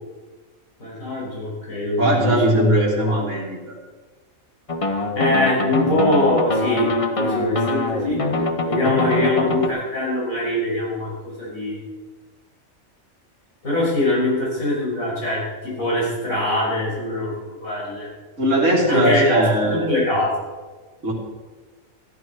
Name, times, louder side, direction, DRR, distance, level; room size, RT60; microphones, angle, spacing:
voice 1, 0.8-3.1 5.1-8.2 8.6-11.8 13.6-18.1 18.9-20.5, left 1 dB, 70° left, -5 dB, 6.4 m, -23 dB
voice 2, 2.0-3.6 8.7-9.1 9.4-9.6 18.4-20.0 21.0-21.1, right 1 dB, 60° right, -5 dB, 3.4 m, -20 dB
sound 1, 4.7-9.7, left 2 dB, 25° left, 0.9 m, -24 dB
14.5 x 12.5 x 4.7 m, 1.3 s
omnidirectional pair, 1.5 m